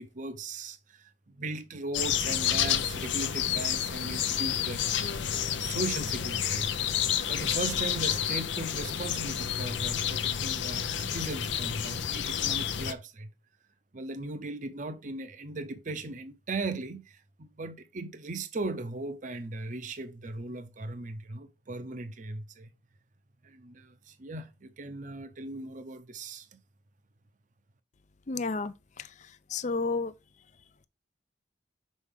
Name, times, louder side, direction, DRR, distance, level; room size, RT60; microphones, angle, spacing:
voice 1, 0.0-6.7 7.3-13.3 13.9-22.7 23.4-26.5, right 2 dB, 45° right, 0.7 m, -38 dB
sound 1, 1.9-12.9, left 9 dB, 85° left, 0.6 m, -30 dB
voice 2, 28.3-28.7 29.5-30.1, left 4 dB, 40° left, 0.5 m, -30 dB
6.3 x 4.5 x 3.6 m
head